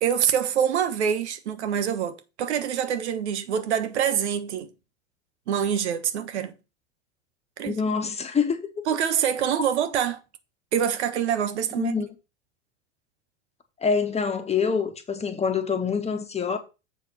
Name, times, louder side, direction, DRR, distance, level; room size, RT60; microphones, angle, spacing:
voice 1, 0.0-4.7 5.5-6.5 7.6-7.8 8.9-10.2 10.7-11.9, right 8 dB, 75° right, 1.3 m, -25 dB
voice 2, 7.6-8.9 11.8-12.1 13.8-16.6, left 5 dB, 20° left, 1.5 m, -26 dB
7.6 x 4.4 x 5.7 m
hypercardioid pair, 95°, 34 cm